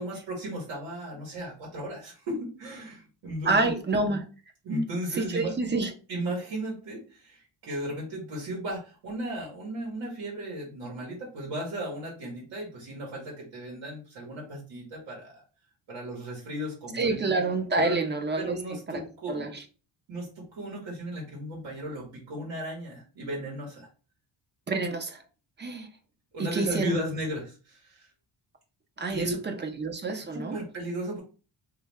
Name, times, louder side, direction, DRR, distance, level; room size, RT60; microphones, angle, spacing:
voice 1, 0.0-3.6 4.6-5.5 6.1-15.4 15.9-17.2 17.8-18.0 18.4-19.5 20.1-23.9 26.3-28.1 29.1-29.4 30.3-31.2, right 1 dB, 75° right, 1.9 m, -35 dB
voice 2, 3.4-4.2 5.2-5.9 16.9-18.6 18.9-19.0 19.3-19.6 24.7-25.2 25.6-25.9 26.4-27.0 29.0-30.6, right 3 dB, 25° right, 0.6 m, -28 dB
3.3 x 3.1 x 3.5 m
cardioid pair, 155°, 45 cm